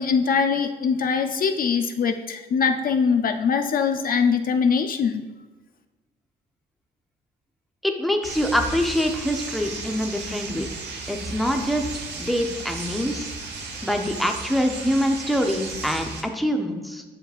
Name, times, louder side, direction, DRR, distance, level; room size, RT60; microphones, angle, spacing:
voice 1, 0.0-5.2, left 6 dB, 50° left, 7 dB, 0.4 m, -22 dB
voice 2, 7.8-10.7 11.1-13.3 13.8-17.0, equal, ahead, 4 dB, 0.6 m, -25 dB
sound 1, 8.2-16.2, right 3 dB, 65° right, 1.0 m, -35 dB
7.9 x 6.2 x 2.4 m, 1.2 s
cardioid pair, 115°, 19 cm